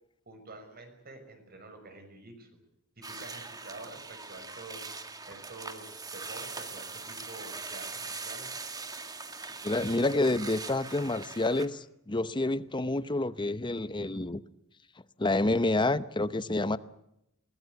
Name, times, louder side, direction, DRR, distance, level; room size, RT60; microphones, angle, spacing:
voice 1, 0.3-2.5 3.0-8.6, right 2 dB, 45° right, 6.1 m, -48 dB
sound 1, 3.0-11.7, right 4 dB, 20° right, 1.7 m, -41 dB
voice 2, 9.6-14.4 15.2-16.8, left 2 dB, 20° left, 0.8 m, -28 dB
23.0 x 19.5 x 8.1 m
head